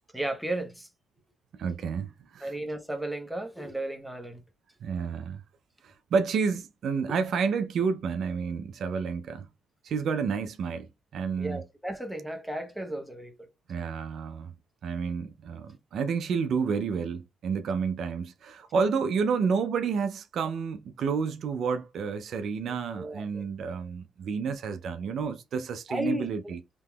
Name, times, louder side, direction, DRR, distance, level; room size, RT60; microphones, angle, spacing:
voice 1, 0.1-0.9 2.4-4.4 11.4-13.5 22.9-23.4 25.9-26.5, right 1 dB, 5° right, 0.8 m, -34 dB
voice 2, 1.5-2.5 4.8-5.4 5.8-9.5 9.8-11.6 13.7-14.5 14.8-26.6, right 5 dB, 65° right, 0.4 m, -30 dB
3.4 x 2.9 x 2.3 m
cardioid pair, 90°, 0 cm